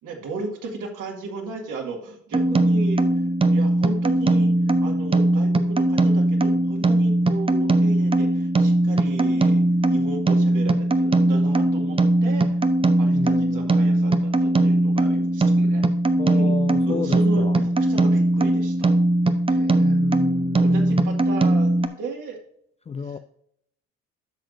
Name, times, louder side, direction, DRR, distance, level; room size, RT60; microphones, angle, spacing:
voice 1, 0.0-3.2 3.5-4.5 4.8-12.6 13.0-15.8 16.3-18.9 19.5-20.0 20.6-22.4 23.0-23.1, right 4 dB, 60° right, 1 dB, 2.2 m, -35 dB
sound 1, 2.3-21.9, right 1 dB, 15° right, 0.7 m, -20 dB
voice 2, 13.1-13.7 16.2-17.6 19.8-21.2 22.9-23.2, left 5 dB, 20° left, 11 dB, 0.4 m, -31 dB
10.5 x 6.2 x 2.7 m, 0.71 s
hypercardioid pair, 60°, 35 cm